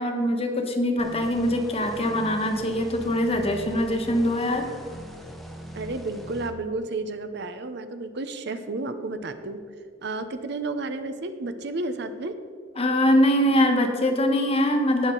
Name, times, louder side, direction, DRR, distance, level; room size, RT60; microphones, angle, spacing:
voice 1, 0.0-4.7 12.8-15.1, equal, 30° left, 4 dB, 1.3 m, -23 dB
sound 1, 1.0-6.5, equal, ahead, 1.0 m, -41 dB
voice 2, 5.7-9.6 10.0-12.4, right 2 dB, 65° right, 9 dB, 0.7 m, -32 dB
18.0 x 6.5 x 3.9 m, 2.1 s
head